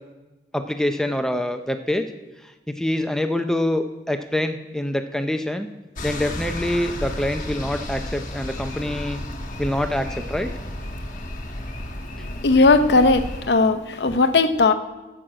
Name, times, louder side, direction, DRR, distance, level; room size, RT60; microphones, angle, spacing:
voice 1, 0.5-2.1 2.4-5.7 6.0-9.2 9.6-10.5 12.2-12.3, left 1 dB, 5° left, 7 dB, 0.5 m, -25 dB
sound 1, 6.0-13.5, left 1 dB, 45° left, 1.2 m, -32 dB
voice 2, 12.4-14.7, left 3 dB, 70° left, 9 dB, 0.7 m, -17 dB
15.0 x 6.1 x 7.5 m, 1.1 s
head